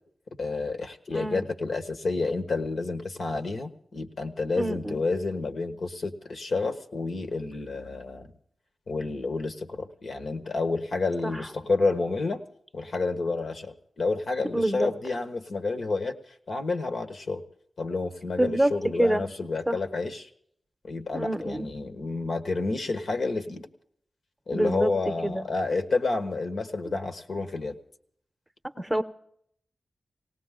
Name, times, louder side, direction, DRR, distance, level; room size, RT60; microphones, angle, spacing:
voice 1, 0.4-8.3 8.9-12.4 12.7-16.2 16.5-17.4 17.8-20.3 20.8-23.7 24.5-27.8, left 3 dB, 70° left, 6 dB, 1.4 m, -29 dB
voice 2, 1.1-1.4 4.6-5.0 11.2-11.5 14.5-14.9 18.4-18.7 19.0-19.2 19.7-19.8 21.1-21.7 24.5-24.9 25.2-25.4 26.9-27.0 28.8-29.0, right 1 dB, 5° right, 9 dB, 0.9 m, -26 dB
19.0 x 18.0 x 3.8 m, 0.67 s
wide cardioid pair, 110°, 0 cm